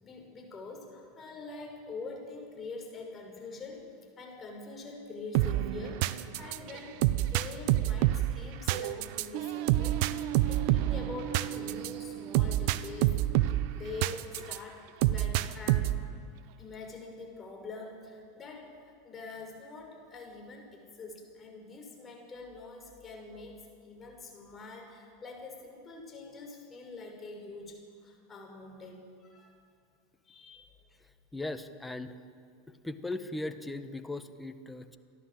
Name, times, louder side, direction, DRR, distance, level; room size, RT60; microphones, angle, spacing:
voice 1, 0.0-3.9 4.2-13.2 13.5-16.0 16.6-29.6 30.2-30.8, left 3 dB, 25° left, 1 dB, 6.0 m, -45 dB
sound 1, 5.3-14.6 15.0-16.1, right 14 dB, 55° right, 0.8 m, -28 dB
voice 2, 31.3-32.1 32.8-35.0, left 2 dB, 5° left, 8 dB, 1.4 m, -38 dB
29.5 x 11.5 x 7.8 m, 2.2 s
hypercardioid pair, 90°, 0 cm